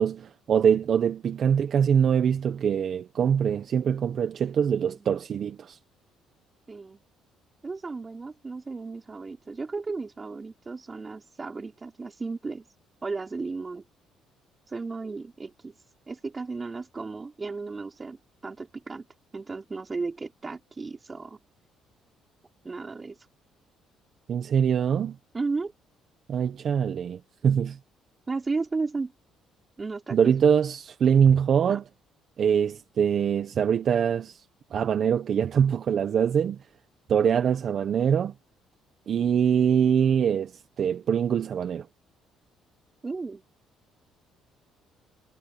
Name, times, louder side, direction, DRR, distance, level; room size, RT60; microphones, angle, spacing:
voice 1, 0.0-5.8 24.3-25.1 26.3-27.8 30.1-31.8 32.4-34.4 34.7-36.6 37.1-38.3 39.1-40.5 40.8-41.8, right 8 dB, 50° right, 1.2 m, -23 dB
voice 2, 6.7-7.0 7.6-12.6 13.0-13.8 14.7-15.7 16.1-19.0 19.3-21.4 22.6-23.2 25.3-25.7 28.3-29.1 29.8-30.3 31.7-31.8 43.0-43.4, right 4 dB, 25° right, 4.1 m, -34 dB
cardioid pair, 105°, 0 cm